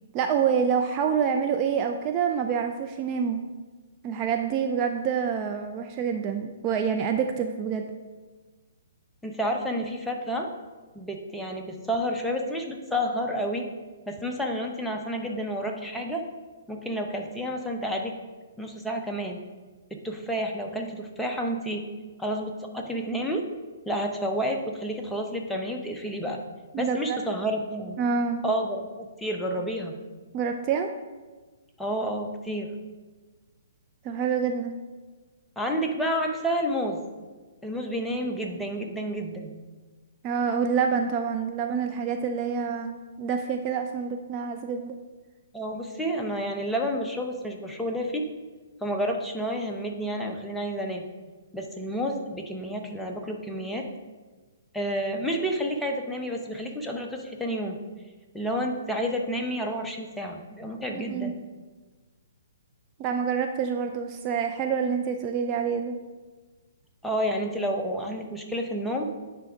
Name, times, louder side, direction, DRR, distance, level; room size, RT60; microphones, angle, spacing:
voice 1, 0.1-3.4 4.0-7.9 26.7-27.2 28.0-28.4 30.3-30.9 34.0-34.8 40.2-45.0 60.9-61.3 63.0-66.0, right 6 dB, 30° right, 4 dB, 0.4 m, -27 dB
voice 2, 9.2-10.5 10.9-13.7 14.1-16.2 16.7-18.1 18.6-19.4 19.9-21.8 22.2-23.4 23.9-26.4 26.8-28.0 28.4-30.0 31.8-32.7 35.6-37.0 37.6-39.5 45.5-48.2 48.8-51.0 51.5-53.9 54.7-57.8 58.3-61.4 67.0-69.1, equal, ahead, 1 dB, 0.8 m, -30 dB
9.5 x 3.4 x 5.1 m, 1.3 s
figure-of-eight pair, 130°, 0 cm